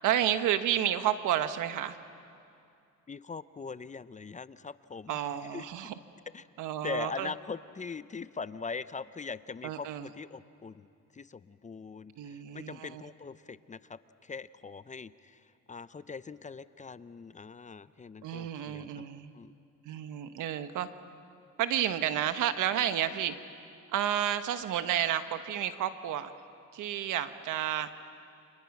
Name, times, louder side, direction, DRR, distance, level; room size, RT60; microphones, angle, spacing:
voice 1, 0.0-2.0 5.1-5.9 6.6-7.3 9.6-10.1 12.2-13.0 18.2-19.3 19.8-20.9 21.6-23.3 23.9-26.3 26.7-27.9, right 11 dB, 85° right, 10 dB, 1.2 m, -31 dB
voice 2, 3.1-5.9 6.3-6.5 6.8-10.9 11.1-19.0 19.3-19.5, left 5 dB, 25° left, 15 dB, 0.6 m, -42 dB
30.0 x 26.5 x 6.0 m, 2.5 s
cardioid pair, 90°, 30 cm